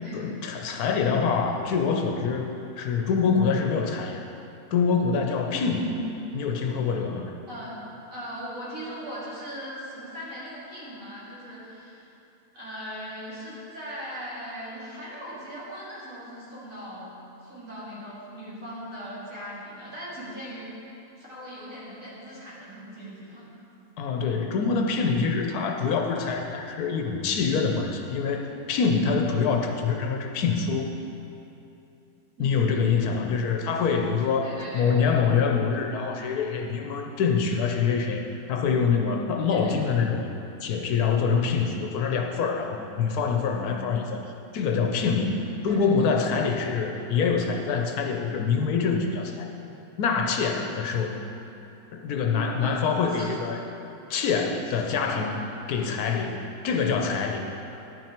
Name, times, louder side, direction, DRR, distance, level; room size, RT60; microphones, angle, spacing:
voice 1, 0.1-4.2 4.7-5.9 6.3-7.3 24.0-30.9 32.4-40.3 40.6-44.2 44.5-45.4 45.6-49.5 50.0-51.2 51.9-53.6 54.1-57.4, left 5 dB, 85° left, 3 dB, 1.2 m, -25 dB
voice 2, 5.5-6.2 7.5-7.8 8.1-12.0 12.5-17.1 17.4-20.7 21.2-23.5 29.1-29.4 32.4-32.9 34.4-35.2 39.5-39.9 45.3-46.1 52.3-53.3 54.9-55.7, equal, 60° right, -9 dB, 3.1 m, -38 dB
10.5 x 9.0 x 4.4 m, 2.8 s
omnidirectional pair, 1.6 m